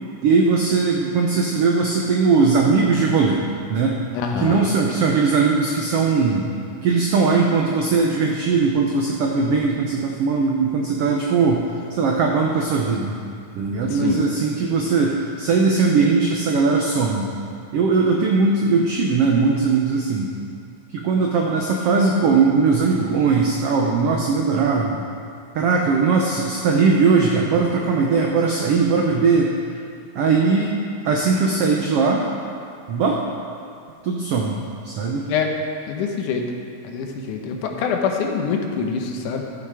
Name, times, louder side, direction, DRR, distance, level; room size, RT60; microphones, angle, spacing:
voice 1, 0.2-3.4 3.7-4.0 4.4-6.5 6.8-11.6 11.9-13.2 13.6-17.3 17.7-20.3 20.9-25.0 25.5-29.5 30.1-30.8 31.0-32.3 32.9-33.2 34.0-34.6 34.8-35.2, right 4 dB, 80° right, 0 dB, 1.3 m, -19 dB
voice 2, 4.1-4.6 13.8-14.2 35.3-35.5 35.9-36.5 36.8-39.4, left 6 dB, 80° left, 2 dB, 2.3 m, -25 dB
13.0 x 7.1 x 4.8 m, 2.4 s
omnidirectional pair, 3.6 m